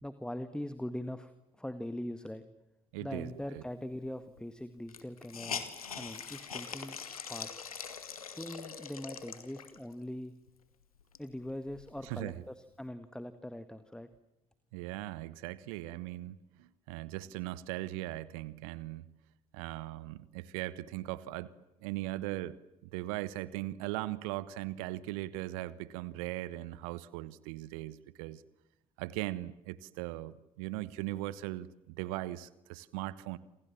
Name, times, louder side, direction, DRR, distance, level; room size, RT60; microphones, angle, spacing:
voice 1, 0.0-1.3 1.6-2.4 3.0-5.7 6.0-7.5 8.2-10.3 11.2-14.1, left 1 dB, 5° left, 11 dB, 1.8 m, -41 dB
voice 2, 2.9-3.6 12.0-12.4 14.7-19.1 19.5-21.5 21.8-22.6 22.9-28.4 29.0-33.4, right 16 dB, 70° right, 19 dB, 1.1 m, -39 dB
Hiss, 4.0-4.1 4.4-4.5 4.9-9.9 10.5-10.6 10.9-12.3, left 6 dB, 85° left, 1.9 m, -43 dB
28.5 x 27.5 x 7.3 m, 0.93 s
figure-of-eight pair, 50°, 18 cm